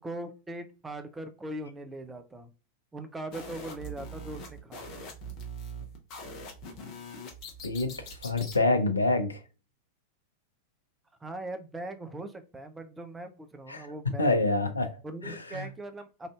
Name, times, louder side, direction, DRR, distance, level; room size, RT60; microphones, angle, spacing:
voice 1, 0.0-2.5 2.9-5.1 11.2-14.7 15.0-16.3, right 1 dB, 10° right, 0.5 m, -40 dB
sound 1, 3.3-8.6, right 1 dB, 40° left, 0.8 m, -42 dB
voice 2, 8.2-9.4 13.7-13.9 14.2-14.9 15.2-15.7, left 2 dB, 80° left, 0.5 m, -26 dB
3.3 x 2.5 x 2.3 m
figure-of-eight pair, 90°, 0 cm